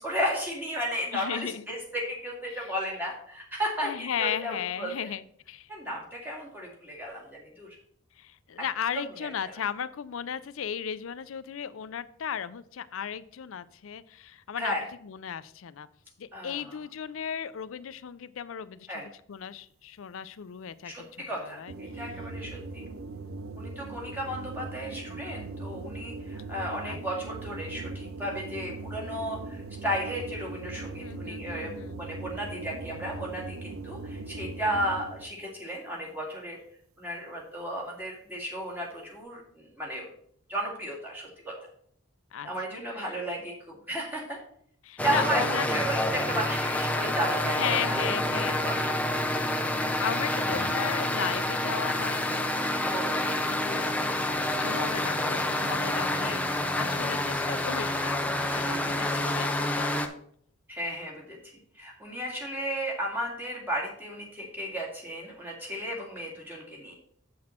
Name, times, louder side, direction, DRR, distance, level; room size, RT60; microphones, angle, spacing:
voice 1, 0.0-4.9 5.7-7.8 9.2-9.3 14.6-14.8 16.3-16.7 18.9-19.1 20.8-22.8 23.6-31.7 32.0-36.6 37.0-40.1 40.5-41.5 42.4-44.4 45.0-48.0 48.3-49.0 49.8-49.9 52.8-53.4 56.3-56.6 58.4-59.3 60.7-61.4 61.8-66.9, equal, 10° right, -3 dB, 2.0 m, -34 dB
voice 2, 1.1-1.7 2.5-2.7 3.8-5.7 8.2-15.9 16.2-21.7 26.8-27.2 31.0-32.0 42.3-43.2 44.8-45.7 47.4-49.0 50.0-52.4 53.5-53.9 54.6-56.4 56.8-60.2, left 8 dB, 75° left, 15 dB, 0.4 m, -36 dB
sound 1, 21.7-35.3, right 3 dB, 80° right, 0.6 m, -39 dB
sound 2, 45.0-60.1, left 1 dB, 5° left, 0.4 m, -28 dB
7.4 x 6.0 x 4.3 m, 0.64 s
head